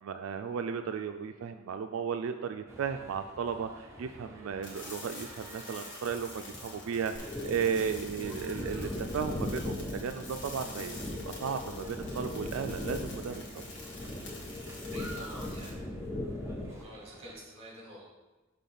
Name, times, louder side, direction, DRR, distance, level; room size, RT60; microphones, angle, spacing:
voice 1, 0.0-11.0 11.3-13.4, right 6 dB, 85° right, 7 dB, 0.3 m, -35 dB
sound 1, 2.7-17.3, right 1 dB, 15° right, 0.8 m, -51 dB
sound 2, 4.6-15.7, left 2 dB, 65° left, 1.5 m, -48 dB
sound 3, 7.2-16.8, left 1 dB, 10° left, 0.4 m, -39 dB
voice 2, 14.9-15.7 16.7-18.1, equal, 30° right, -4 dB, 2.1 m, -48 dB
5.8 x 3.6 x 5.5 m, 1.1 s
head